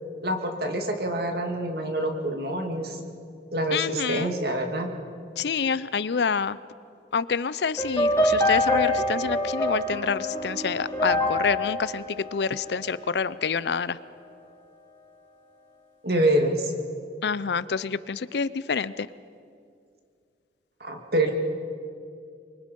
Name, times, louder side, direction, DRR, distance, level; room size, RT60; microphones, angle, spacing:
voice 1, 0.2-3.0 3.5-4.9 16.0-16.7 20.8-21.3, right 1 dB, 60° right, 3 dB, 2.3 m, -26 dB
voice 2, 3.7-4.3 5.4-6.6 7.1-14.0 17.2-19.1, left 6 dB, 70° left, 17 dB, 0.5 m, -27 dB
sound 1, 7.8-13.1, left 1 dB, 15° left, 3.8 m, -26 dB
24.5 x 24.0 x 5.4 m, 2.4 s
head